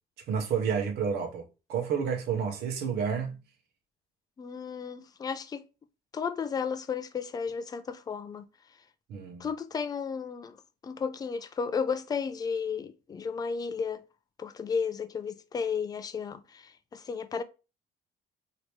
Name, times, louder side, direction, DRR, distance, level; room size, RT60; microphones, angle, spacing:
voice 1, 0.3-3.4 9.1-9.5, right 7 dB, 75° right, 0.9 m, -30 dB
voice 2, 4.4-5.6 6.1-8.4 9.4-10.6 10.8-14.0 14.4-17.4, left 6 dB, 25° left, 0.3 m, -33 dB
2.9 x 2.9 x 3.1 m
cardioid pair, 110°, 17 cm